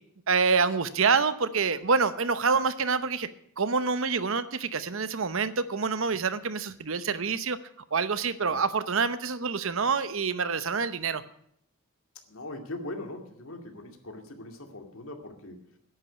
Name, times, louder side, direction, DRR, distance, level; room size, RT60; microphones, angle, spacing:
voice 1, 0.3-3.3 3.6-7.6 7.9-11.2, right 5 dB, 65° right, 13 dB, 0.8 m, -26 dB
voice 2, 12.3-15.8, left 2 dB, 70° left, 4 dB, 2.3 m, -41 dB
10.5 x 9.0 x 9.4 m, 0.70 s
head